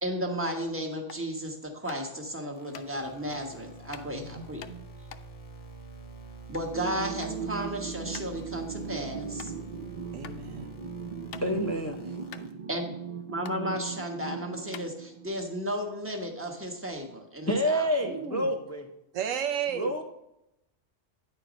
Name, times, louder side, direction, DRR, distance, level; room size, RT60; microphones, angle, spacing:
voice 1, 0.0-4.6 6.5-9.5 12.7-12.9 13.3-17.9, equal, 10° right, 2 dB, 1.1 m, -34 dB
sound 1, 1.0-1.3 1.9-2.2 2.7-2.9 3.9-4.1 4.6-6.7 7.0-7.4 7.7-7.8 8.1-8.3 8.8-8.9 9.4-9.5 10.2-10.4 10.8-11.8 12.0-12.1 12.3-13.1 13.4-13.6 14.2-14.3 14.7-15.4, left 9 dB, 70° left, 0.9 m, -46 dB
sound 2, 2.6-12.5, right 3 dB, 40° left, 1.0 m, -47 dB
voice 2, 4.1-4.9 10.1-10.8 11.5-11.6 12.0-12.6 18.0-18.5 19.1-19.9, right 8 dB, 80° right, 8 dB, 1.1 m, -35 dB
sound 3, 6.7-15.8, right 6 dB, 60° right, 0.4 m, -39 dB
voice 3, 11.4-12.0 17.5-18.9 19.7-20.0, equal, 20° left, 3 dB, 0.4 m, -28 dB
9.6 x 4.5 x 5.1 m, 0.86 s
omnidirectional pair, 1.3 m